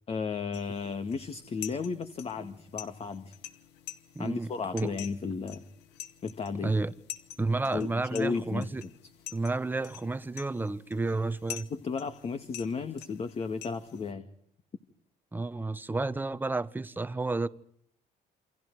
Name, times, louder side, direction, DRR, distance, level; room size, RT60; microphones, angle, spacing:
voice 1, 0.1-3.4 4.2-5.6 6.2-6.7 7.7-8.9 11.7-14.3, left 5 dB, 35° left, 1.9 m, -34 dB
sound 1, 0.5-14.1, left 12 dB, 90° left, 2.1 m, -47 dB
voice 2, 4.1-4.9 6.6-6.9 7.4-8.8 9.3-11.7 15.3-17.5, right 3 dB, 10° right, 1.1 m, -31 dB
28.5 x 26.0 x 4.8 m
cardioid pair, 110°, 17 cm